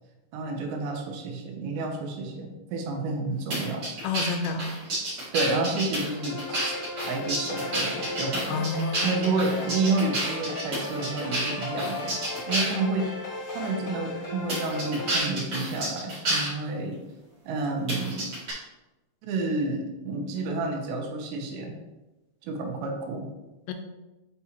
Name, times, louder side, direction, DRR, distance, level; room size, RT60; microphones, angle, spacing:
voice 1, 0.3-3.9 5.3-12.2 12.5-13.1 13.5-17.0 17.5-18.3 19.2-21.8 22.4-23.3, right 3 dB, 80° right, 2 dB, 2.9 m, -30 dB
sound 1, 3.5-12.8 13.5-13.6 14.5-16.5 17.9-18.5, right 1 dB, 40° right, 2.5 m, -30 dB
voice 2, 4.0-4.7 8.5-9.2 23.7-23.8, left 3 dB, 80° left, 6 dB, 2.7 m, -29 dB
sound 2, 6.0-15.2, left 2 dB, 65° left, 1.3 m, -36 dB
8.3 x 4.7 x 2.9 m, 1.0 s
omnidirectional pair, 5.3 m